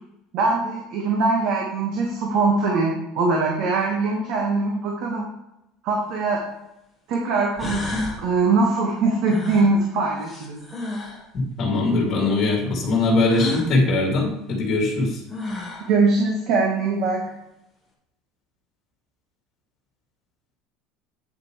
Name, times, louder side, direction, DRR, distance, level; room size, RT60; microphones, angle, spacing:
voice 1, 0.3-5.3 5.8-6.4 7.1-10.6 15.9-17.2, right 3 dB, 45° right, 0 dB, 1.3 m, -22 dB
sound 1, 6.1-6.2 7.1-7.2 7.6-8.2 9.3-11.2 13.3-13.7 14.9-15.0 15.3-15.9, left 3 dB, 10° left, 1.2 m, -31 dB
voice 2, 11.6-15.2, left 2 dB, 30° left, -1 dB, 2.4 m, -21 dB
8.7 x 7.4 x 3.1 m, 0.86 s
cardioid pair, 180°, 0 cm